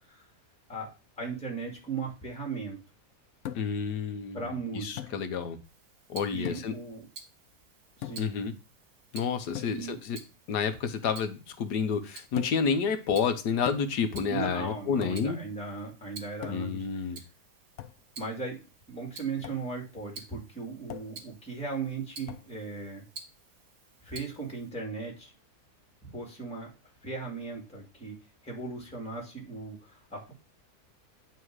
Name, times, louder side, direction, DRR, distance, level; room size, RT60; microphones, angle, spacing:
voice 1, 0.7-2.8 4.3-5.2 6.3-7.1 8.0-8.3 9.7-10.0 14.3-17.2 18.2-23.0 24.0-25.3 26.0-26.7 27.0-28.2 28.4-30.3, right 4 dB, 5° left, 0 dB, 2.2 m, -37 dB
sound 1, 3.4-3.9 5.0-5.2 6.4-6.8 8.0-8.4 9.5-9.8 12.4-12.7 13.7-14.1 15.0-15.4 16.4-16.8 17.8-18.0 19.4-19.7 20.9-21.2 22.3-22.5, left 11 dB, 70° left, 0.7 m, -40 dB
voice 2, 3.5-5.6 6.1-6.8 8.2-8.5 9.1-10.2 10.5-15.4 16.5-17.2, left 6 dB, 90° left, 9 dB, 1.6 m, -30 dB
Tick-tock, 5.6-24.7, right 4 dB, 65° right, 1.9 m, -51 dB
9.4 x 3.5 x 4.6 m, 0.30 s
omnidirectional pair, 1.7 m